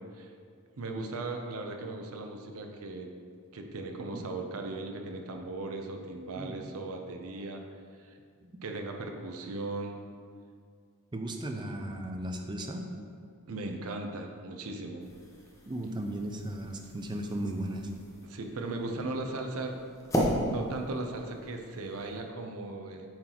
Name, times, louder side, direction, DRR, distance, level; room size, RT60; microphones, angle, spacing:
voice 1, 0.8-3.1 3.5-7.6 8.0-8.2 8.6-10.1 13.5-15.1 18.2-19.7 20.5-23.1, right 2 dB, 70° right, 4 dB, 0.6 m, -37 dB
voice 2, 11.1-12.8 15.7-17.9 19.0-19.1 20.2-20.5, right 1 dB, 20° right, 4 dB, 0.4 m, -36 dB
sound 1, 15.0-22.2, equal, 15° left, 0.7 m, -37 dB
8.6 x 4.0 x 2.9 m, 2.2 s
head